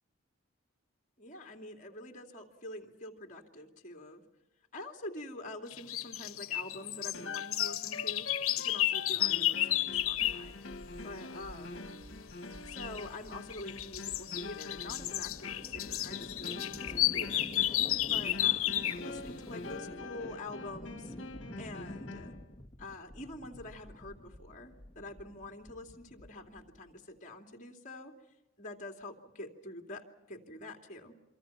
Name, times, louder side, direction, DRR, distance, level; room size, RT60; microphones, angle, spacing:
voice 1, 1.2-4.2 4.7-8.3 8.6-11.9 12.6-17.5 18.0-21.1 21.6-22.3 22.8-28.1 28.6-31.2, left 2 dB, 35° left, 4 dB, 2.8 m, -46 dB
sound 1, 5.7-10.4 12.7-13.0 13.5-19.1, left 13 dB, 85° left, 1.1 m, -32 dB
sound 2, 7.1-22.4, left 3 dB, 60° left, 2.0 m, -45 dB
sound 3, 9.9-26.9, left 1 dB, 15° left, 2.2 m, -49 dB
27.5 x 25.0 x 5.8 m, 1.0 s
head